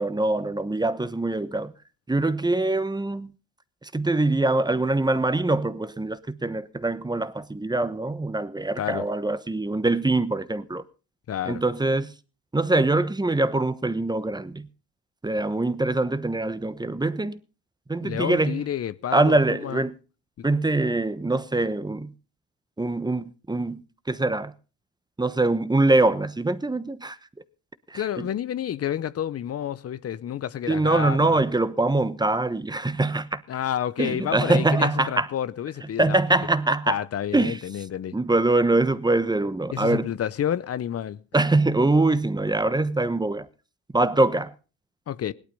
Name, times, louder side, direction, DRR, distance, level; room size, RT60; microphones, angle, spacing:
voice 1, 0.0-1.7 2.1-3.3 3.8-10.8 11.5-12.1 12.5-14.7 15.2-17.4 17.9-18.6 19.1-19.9 20.4-22.1 22.8-23.8 24.1-24.5 25.2-27.2 27.9-28.3 30.7-33.4 34.0-35.3 36.0-37.0 37.3-37.6 38.1-40.1 41.3-43.5 43.9-44.5, right 2 dB, 15° right, 1.2 m, -23 dB
voice 2, 11.3-11.6 18.0-19.8 27.9-31.4 33.5-36.2 36.9-38.1 39.7-41.2 45.1-45.3, left 10 dB, 55° left, 0.8 m, -30 dB
17.5 x 12.0 x 5.4 m
cardioid pair, 90°, 30 cm